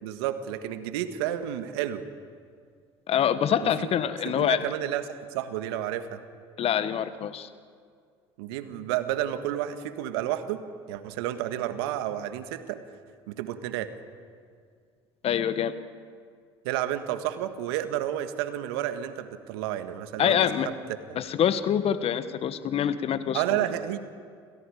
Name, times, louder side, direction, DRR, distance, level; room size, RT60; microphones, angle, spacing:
voice 1, 0.0-2.0 3.6-3.9 4.2-6.2 8.4-12.8 13.3-13.9 16.6-20.4 21.1-21.2 23.3-24.0, right 12 dB, 75° right, 10 dB, 1.7 m, -31 dB
voice 2, 3.1-4.6 6.6-7.5 15.2-15.7 20.2-20.7 21.1-23.4, left 9 dB, 50° left, 12 dB, 1.5 m, -25 dB
29.0 x 27.5 x 5.0 m, 2.1 s
hypercardioid pair, 65°, 13 cm